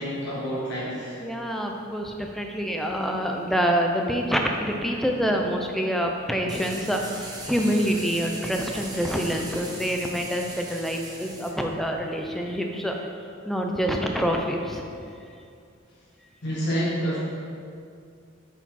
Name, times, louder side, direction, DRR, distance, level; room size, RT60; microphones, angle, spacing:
voice 1, 0.0-1.2 4.9-5.0 16.4-17.2, equal, 60° left, -7 dB, 1.0 m, -28 dB
voice 2, 1.2-13.0 13.5-14.8, equal, ahead, 2 dB, 0.4 m, -26 dB
sound 1, 6.5-11.5, right 2 dB, 20° right, 0.7 m, -39 dB
5.9 x 4.5 x 4.2 m, 2.4 s
head